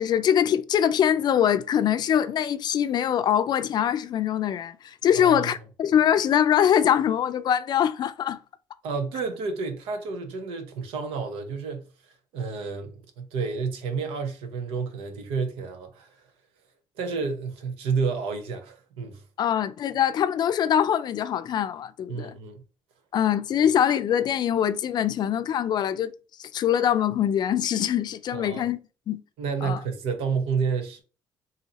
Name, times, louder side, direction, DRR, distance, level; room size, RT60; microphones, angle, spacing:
voice 1, 0.0-8.4 19.4-22.3 23.1-26.1 26.4-28.8 29.1-29.2 29.6-29.8, left 9 dB, 50° left, 0.4 m, -23 dB
voice 2, 5.1-5.5 8.8-11.9 12.3-16.2 17.0-19.2 22.1-22.6 28.3-28.7 29.4-31.0, right 5 dB, 85° right, 0.9 m, -30 dB
4.0 x 2.7 x 2.8 m
cardioid pair, 105°, 9 cm